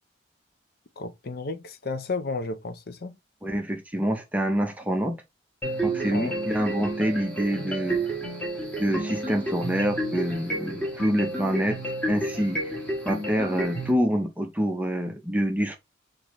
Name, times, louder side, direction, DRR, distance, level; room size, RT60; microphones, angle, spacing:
voice 1, 1.0-3.2 6.1-6.3, left 3 dB, 50° left, 0.6 m, -32 dB
voice 2, 3.4-5.2 5.8-8.0 8.8-11.8 12.1-12.8 13.1-15.8, equal, 10° right, 0.5 m, -26 dB
sound 1, 5.6-13.9, right 1 dB, 10° left, 1.2 m, -31 dB
5.4 x 2.6 x 3.0 m
head